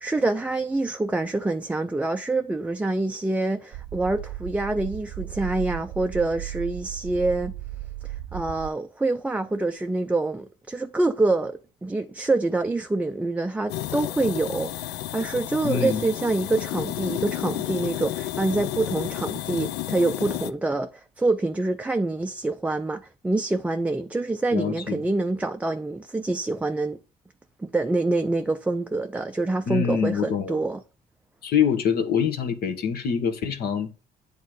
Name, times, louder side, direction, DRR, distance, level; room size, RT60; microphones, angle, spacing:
voice 1, 0.0-7.5 8.0-27.0 27.6-30.8, right 2 dB, 10° right, 0.4 m, -26 dB
sound 1, 3.7-8.7, right 15 dB, 65° right, 0.4 m, -36 dB
sound 2, 13.7-20.5, left 14 dB, 85° left, 0.5 m, -31 dB
voice 2, 15.6-16.0 24.5-25.0 29.7-30.6 31.4-33.9, left 7 dB, 65° left, 1.2 m, -25 dB
8.3 x 3.6 x 6.3 m
cardioid pair, 110°, 17 cm